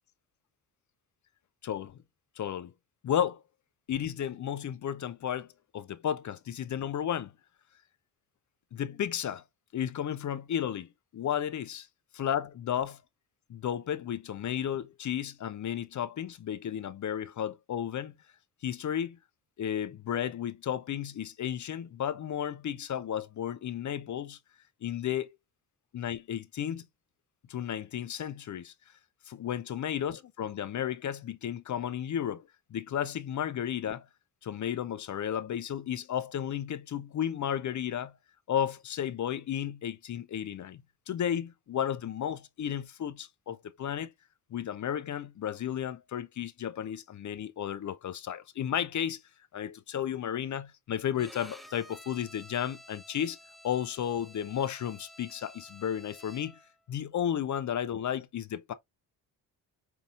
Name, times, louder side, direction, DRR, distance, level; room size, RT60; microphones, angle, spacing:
voice 1, 1.6-2.0 2.4-2.7 3.0-3.4 3.9-7.3 8.7-9.4 9.7-11.9 12.1-13.0 13.5-18.2 18.6-19.2 19.6-24.4 24.8-25.3 25.9-26.9 27.5-28.7 29.3-32.4 32.7-34.1 34.4-38.2 38.5-44.1 44.5-49.2 49.5-53.4 53.6-56.6 56.9-58.7, left 9 dB, 40° left, 0.6 m, -33 dB
Bowed string instrument, 51.2-56.7, equal, ahead, 0.7 m, -52 dB
5.6 x 2.7 x 2.4 m
hypercardioid pair, 50°, 45 cm